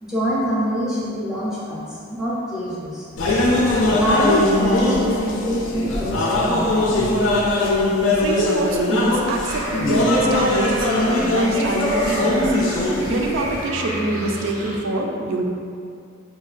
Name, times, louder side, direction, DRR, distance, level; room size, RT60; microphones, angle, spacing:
voice 1, 0.0-3.0 3.9-6.8, equal, 5° right, -8 dB, 0.5 m, -25 dB
sound 1, 3.2-13.6, left 1 dB, 65° left, 0.4 m, -20 dB
voice 2, 8.1-15.4, right 2 dB, 65° right, 1 dB, 0.4 m, -25 dB
sound 2, 9.5-14.8, right 1 dB, 90° right, 0.7 m, -32 dB
4.7 x 2.2 x 2.4 m, 2.4 s
head